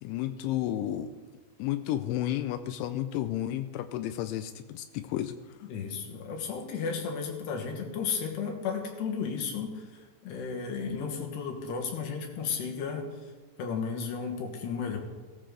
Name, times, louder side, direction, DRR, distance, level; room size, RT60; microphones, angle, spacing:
voice 1, 0.0-1.1 1.6-5.3, left 12 dB, 85° left, 9 dB, 3.0 m, -32 dB
voice 2, 5.7-13.1 13.6-15.0, left 5 dB, 70° left, 2 dB, 3.4 m, -34 dB
16.0 x 15.0 x 3.8 m, 1.3 s
omnidirectional pair, 5.4 m